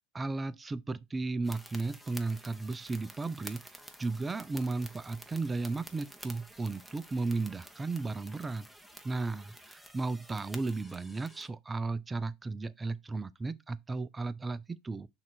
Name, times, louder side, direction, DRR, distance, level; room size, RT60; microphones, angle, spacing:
voice 1, 0.1-3.6 4.0-8.7 9.0-15.1, right 3 dB, 20° right, 0.6 m, -35 dB
sound 1, 1.4-11.5, right 1 dB, ahead, 1.1 m, -51 dB
5.9 x 3.9 x 4.3 m
hypercardioid pair, 75°, 0 cm